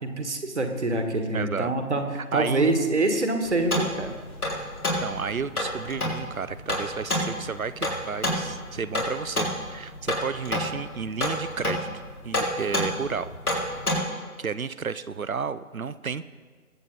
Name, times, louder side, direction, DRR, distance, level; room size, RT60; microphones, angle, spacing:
voice 1, 0.0-4.1, right 2 dB, 50° right, 6 dB, 1.6 m, -25 dB
voice 2, 1.3-1.7 2.3-2.7 5.0-13.3 14.4-16.3, right 5 dB, 65° right, 14 dB, 0.7 m, -32 dB
sound 1, 3.4-14.0, left 1 dB, 75° left, 3.6 m, -29 dB
21.5 x 7.9 x 3.9 m, 1.5 s
figure-of-eight pair, 160°, 45 cm